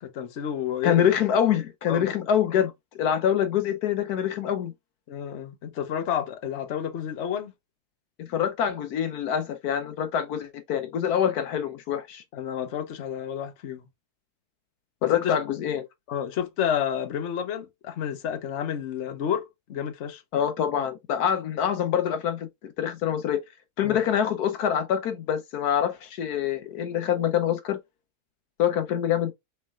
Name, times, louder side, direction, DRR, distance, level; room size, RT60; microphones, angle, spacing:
voice 1, 0.0-1.0 1.9-2.1 5.1-7.5 12.3-13.9 15.0-15.4 16.1-20.2 23.8-24.0, left 9 dB, 50° left, 1.1 m, -30 dB
voice 2, 0.8-4.7 8.2-12.2 15.0-15.8 20.3-22.5 22.8-23.4 23.8-27.8 28.6-29.3, left 9 dB, 75° left, 1.2 m, -25 dB
6.3 x 3.4 x 2.3 m
omnidirectional pair, 1.7 m